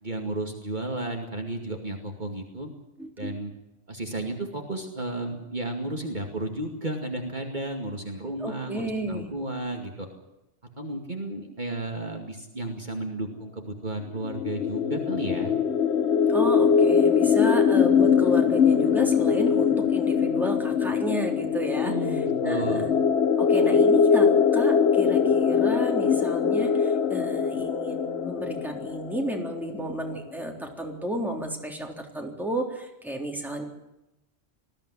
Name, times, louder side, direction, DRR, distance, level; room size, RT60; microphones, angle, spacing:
voice 1, 0.0-2.7 3.2-3.5 3.9-10.1 10.8-15.5 21.7-22.9, right 2 dB, 40° right, 2 dB, 2.5 m, -33 dB
voice 2, 3.0-3.4 8.4-9.3 16.3-22.9 23.4-33.6, right 1 dB, ahead, 1 dB, 3.7 m, -32 dB
sound 1, 14.2-29.8, left 6 dB, 65° left, 1.2 m, -22 dB
20.5 x 15.5 x 9.8 m, 0.91 s
omnidirectional pair, 1.2 m